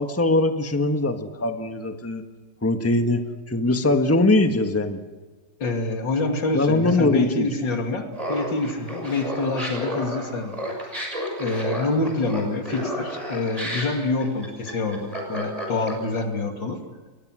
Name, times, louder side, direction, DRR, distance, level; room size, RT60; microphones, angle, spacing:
voice 1, 0.0-2.2 2.6-5.0 6.5-7.5, left 2 dB, 10° left, 6 dB, 1.4 m, -21 dB
voice 2, 5.6-10.5 10.8-10.9 11.4-16.8, left 3 dB, 90° left, 4 dB, 3.3 m, -26 dB
Laughter, 8.1-16.2, equal, 20° right, 6.3 m, -31 dB
29.0 x 22.5 x 6.3 m, 1.3 s
omnidirectional pair, 1.9 m